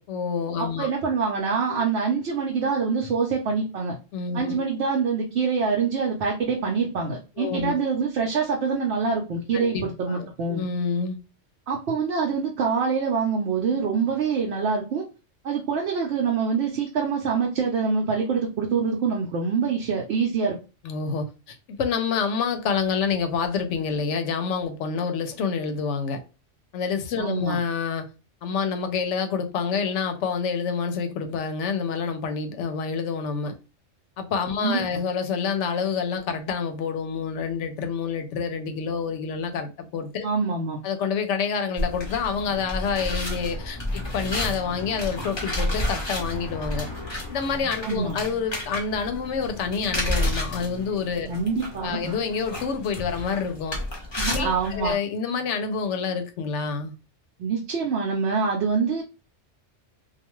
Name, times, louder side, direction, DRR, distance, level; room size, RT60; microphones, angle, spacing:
voice 1, 0.1-0.9 1.7-1.9 4.1-4.7 7.4-7.8 9.5-11.2 20.8-26.2 26.7-28.1 28.4-33.5 34.2-40.3 40.8-46.9 47.3-51.3 51.8-53.8 54.3-56.9, left 6 dB, 80° left, 0.9 m, -28 dB
voice 2, 0.6-4.0 4.3-10.6 11.7-15.1 15.4-20.6 27.2-27.6 34.6-34.8 40.2-40.8 47.8-48.2 51.3-52.2 54.2-54.9 57.4-59.0, right 5 dB, 70° right, 0.8 m, -25 dB
sound 1, 41.8-54.9, left 1 dB, 30° left, 0.6 m, -31 dB
2.3 x 2.3 x 3.0 m
omnidirectional pair, 1.2 m